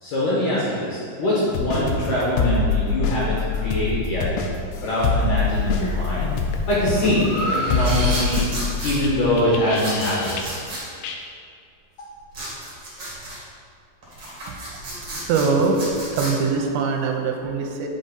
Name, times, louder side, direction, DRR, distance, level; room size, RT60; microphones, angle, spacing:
voice 1, 0.0-4.3 4.8-6.3 6.7-8.5 8.8-10.4, left 1 dB, 65° left, -7 dB, 2.2 m, -23 dB
sound 1, 1.5-10.7 11.0-11.2, left 4 dB, 90° left, 2.9 m, -25 dB
Breathing, 5.4-5.9 6.4-8.7, right 1 dB, 60° right, 1.6 m, -30 dB
sound 2, 7.8-9.0 9.7-10.8 12.3-13.4 14.0-16.3, right 1 dB, 45° right, 1.5 m, -33 dB
voice 2, 15.2-15.8 16.1-17.9, right 4 dB, 90° right, 3 dB, 2.9 m, -22 dB
7.5 x 5.2 x 4.0 m, 2.2 s
omnidirectional pair, 5.1 m